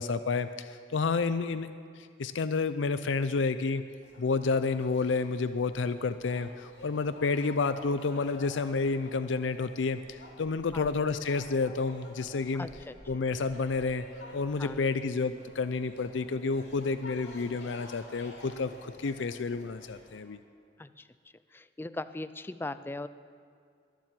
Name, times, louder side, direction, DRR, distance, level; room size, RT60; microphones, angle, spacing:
voice 1, 0.0-1.7 2.0-3.8 4.2-12.7 13.1-14.1 14.3-20.4, left 4 dB, 85° left, 12 dB, 0.5 m, -30 dB
sound 1, 4.0-20.2, left 1 dB, 70° left, 3.0 m, -50 dB
voice 2, 12.5-12.9 14.6-14.8 20.8-21.1 21.5-23.1, left 2 dB, 10° left, 14 dB, 0.4 m, -39 dB
21.5 x 7.5 x 7.5 m, 2.3 s
head